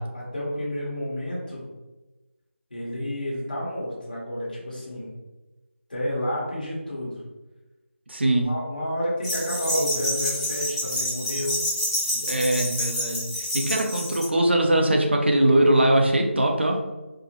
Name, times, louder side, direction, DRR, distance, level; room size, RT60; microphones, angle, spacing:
voice 1, 0.1-1.6 2.7-5.1 5.9-7.2 8.4-11.6, equal, 40° left, -6 dB, 1.3 m, -30 dB
voice 2, 8.1-8.5 12.2-13.3 13.5-16.8, right 1 dB, 55° right, 1 dB, 0.5 m, -21 dB
sound 1, 9.2-14.2, left 1 dB, 20° left, 0.8 m, -28 dB
4.3 x 2.1 x 2.9 m, 1.1 s
figure-of-eight pair, 180°, 7 cm